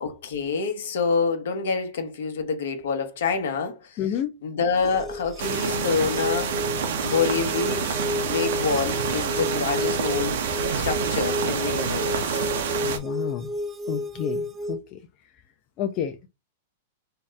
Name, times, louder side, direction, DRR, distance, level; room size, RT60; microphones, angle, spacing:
voice 1, 0.0-4.0 4.4-6.6 7.0-10.4 10.7-12.4, left 5 dB, 70° left, 0.8 m, -27 dB
voice 2, 4.0-4.3 12.8-13.5 13.9-15.0 15.8-16.3, left 10 dB, 40° left, 0.4 m, -30 dB
sound 1, 4.8-14.8, left 1 dB, 25° right, 0.4 m, -32 dB
sound 2, 5.4-13.0, right 6 dB, 65° right, 0.6 m, -27 dB
2.7 x 2.0 x 3.4 m
hypercardioid pair, 110°, 0 cm